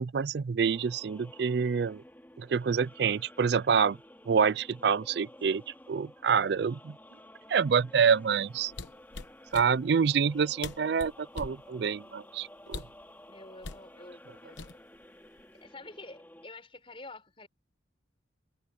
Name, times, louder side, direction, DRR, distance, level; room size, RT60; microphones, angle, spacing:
voice 1, 0.0-2.0 2.4-4.0 4.3-5.6 5.9-7.0 7.5-8.7 9.5-12.8, right 6 dB, 60° right, 0.4 m, -27 dB
sound 1, 0.6-16.5, left 1 dB, 10° left, 5.0 m, -53 dB
sound 2, 8.7-9.7 10.3-10.4 10.6-11.6 12.7-13.0 13.6-13.9 14.6-15.0 15.4-15.7, left 4 dB, 75° left, 1.1 m, -41 dB
voice 2, 13.2-14.6 15.6-17.5, left 2 dB, 30° left, 5.4 m, -48 dB
head